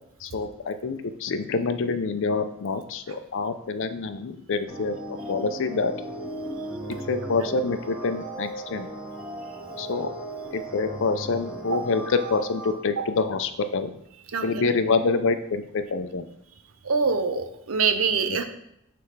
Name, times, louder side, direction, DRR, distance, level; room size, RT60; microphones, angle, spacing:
voice 1, 0.2-5.9 7.1-8.9 9.8-10.1 10.5-13.9 14.4-16.3 18.3-18.4, left 4 dB, 60° left, 9 dB, 0.5 m, -26 dB
sound 1, 4.7-12.7, right 2 dB, 5° right, 1.4 m, -36 dB
voice 2, 16.8-18.4, right 5 dB, 70° right, 8 dB, 0.6 m, -24 dB
9.5 x 3.4 x 3.3 m, 0.80 s
head